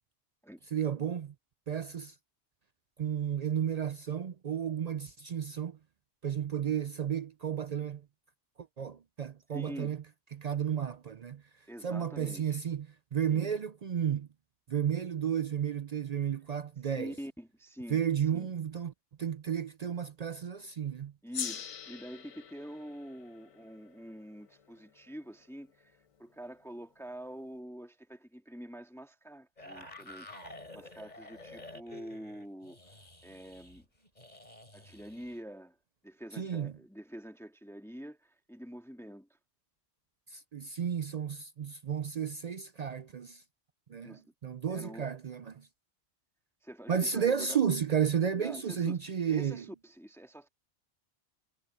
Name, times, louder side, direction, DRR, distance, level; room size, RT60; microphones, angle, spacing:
voice 1, 0.7-1.3 1.7-2.1 3.0-5.8 6.2-8.0 8.8-10.0 10.3-11.4 11.8-12.9 13.1-14.3 14.7-17.1 17.9-18.9 19.2-21.1 36.4-36.7 40.3-43.4 43.9-45.7 46.9-49.6, right 8 dB, 55° right, 0.4 m, -32 dB
voice 2, 9.5-10.0 11.7-12.6 13.3-13.5 16.8-18.0 18.3-18.5 21.2-32.8 33.2-33.8 34.7-35.8 36.0-39.3 44.0-44.2 44.7-45.0 46.6-47.6 48.4-50.5, equal, ahead, 1.7 m, -46 dB
Gong, 21.3-26.1, left 8 dB, 55° left, 0.3 m, -44 dB
sound 1, 29.6-35.4, left 2 dB, 35° left, 4.8 m, -50 dB
omnidirectional pair, 1.2 m